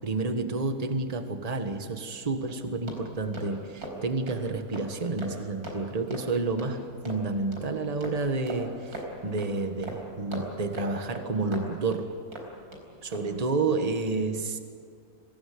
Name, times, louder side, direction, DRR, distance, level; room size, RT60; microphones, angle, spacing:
voice 1, 0.0-12.1 13.0-14.6, right 3 dB, 25° right, 7 dB, 1.5 m, -30 dB
sound 1, 2.5-12.8 13.1-13.4, right 1 dB, 90° right, 4.9 m, -41 dB
25.0 x 17.0 x 9.4 m, 2.1 s
omnidirectional pair, 1.6 m